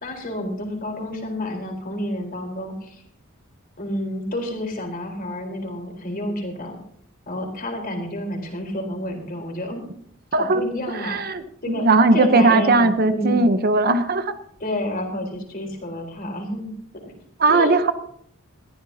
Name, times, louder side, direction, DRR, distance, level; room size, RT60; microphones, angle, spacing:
voice 1, 0.0-3.0 3.8-6.8 7.3-9.9 10.4-11.2 11.6-13.4 14.6-16.7 17.0-17.1 17.5-17.8, left 1 dB, 40° left, 2 dB, 4.2 m, -29 dB
voice 2, 10.3-10.6 10.9-14.3 17.4-17.9, right 3 dB, 45° right, 10 dB, 0.9 m, -18 dB
21.0 x 14.5 x 2.8 m, 0.64 s
head